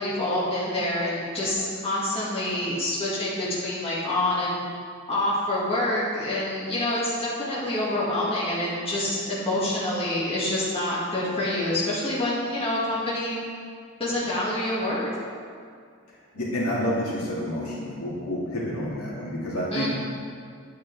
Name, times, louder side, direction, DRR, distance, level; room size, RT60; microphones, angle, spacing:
voice 1, 0.0-4.6 5.1-13.4 14.0-15.1 19.7-19.9, left 1 dB, 25° left, -8 dB, 2.2 m, -27 dB
voice 2, 16.3-19.9, equal, 75° left, -6 dB, 2.6 m, -29 dB
10.5 x 9.2 x 3.6 m, 2.2 s
head